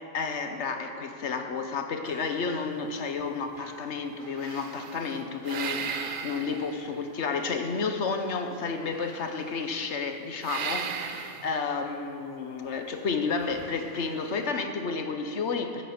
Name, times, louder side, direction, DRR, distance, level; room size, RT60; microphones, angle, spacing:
voice 1, 0.1-15.9, left 4 dB, 90° left, 6 dB, 1.3 m, -31 dB
sound 1, 2.0-3.3 3.5-7.3 8.8-10.0 10.4-11.7 13.2-14.3, right 6 dB, 55° right, 0.8 m, -38 dB
15.5 x 9.0 x 6.1 m, 2.7 s
omnidirectional pair, 1.1 m